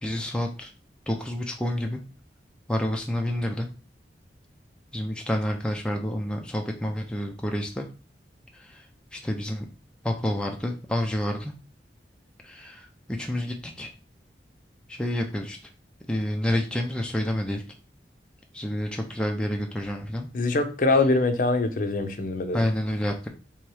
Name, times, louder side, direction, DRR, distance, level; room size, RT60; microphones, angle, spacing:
voice 1, 0.0-0.7 1.1-2.0 2.7-3.7 4.9-7.9 8.5-8.9 9.1-9.7 10.0-11.5 12.4-13.9 14.9-15.6 16.1-17.6 18.5-20.3 22.5-23.3, left 1 dB, 5° left, 2 dB, 0.4 m, -29 dB
voice 2, 20.3-22.6, left 3 dB, 50° left, 8 dB, 0.6 m, -23 dB
3.5 x 3.0 x 4.8 m, 0.34 s
head